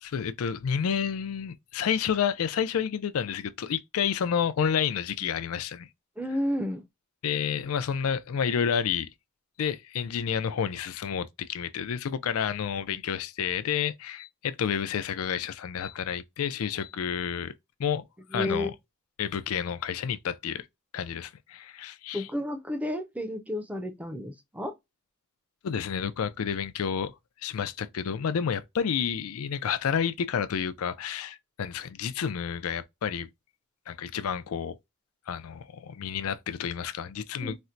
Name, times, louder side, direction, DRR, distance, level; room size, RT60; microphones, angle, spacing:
voice 1, 0.0-5.9 7.2-9.1 9.6-17.5 17.8-18.0 18.3-18.7 19.2-20.7 20.9-22.3 25.6-27.1 27.4-33.3 33.9-34.8 35.3-37.6, left 7 dB, 85° left, 0.4 m, -30 dB
voice 2, 6.2-6.8 18.3-18.7 22.1-24.7 37.4-37.5, left 1 dB, 5° right, 0.5 m, -31 dB
4.2 x 2.1 x 2.4 m
head